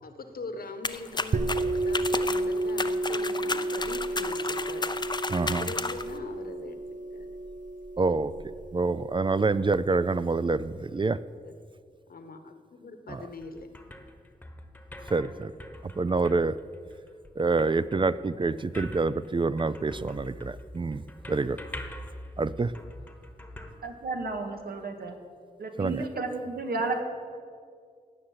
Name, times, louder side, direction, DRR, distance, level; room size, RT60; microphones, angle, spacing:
voice 1, 0.0-4.9 5.4-6.8 7.1-7.3 11.4-11.6 12.1-13.7, left 3 dB, 70° left, 8 dB, 1.3 m, -41 dB
sound 1, 0.8-6.2, left 3 dB, 30° left, 0.6 m, -33 dB
sound 2, 1.3-10.7, right 2 dB, 55° right, 0.8 m, -32 dB
voice 2, 5.3-5.7 8.0-8.3 8.7-11.2 13.1-13.2 15.1-15.5 15.8-16.6 17.4-21.6 22.4-22.7 25.8-26.0, right 3 dB, 30° right, 15 dB, 0.4 m, -27 dB
sound 3, 13.1-24.6, left 1 dB, 10° left, 1.2 m, -45 dB
voice 3, 23.8-25.1 25.6-27.0, right 3 dB, 80° right, 3 dB, 1.8 m, -32 dB
17.5 x 6.4 x 8.8 m, 2.1 s
wide cardioid pair, 95°, 16 cm